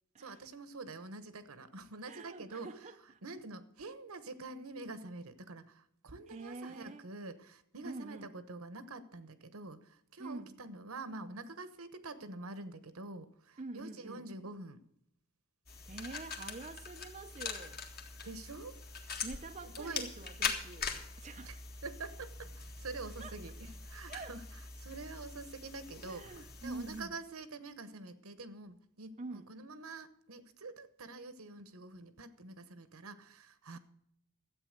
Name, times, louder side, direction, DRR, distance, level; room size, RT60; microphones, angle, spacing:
voice 1, 0.2-2.7 3.2-14.8 18.2-18.8 19.6-20.0 21.4-21.6 21.8-24.4 24.8-33.8, right 3 dB, 75° right, 1.1 m, -46 dB
voice 2, 2.0-3.2 6.3-7.1 7.8-8.3 10.2-10.6 13.6-14.2 15.9-17.8 19.2-21.7 23.2-23.4 24.1-24.4 26.0-27.1 29.2-29.5, right 3 dB, 30° right, 0.5 m, -46 dB
sound 1, 15.7-27.0, left 5 dB, 40° left, 1.7 m, -43 dB
12.5 x 8.5 x 6.6 m
head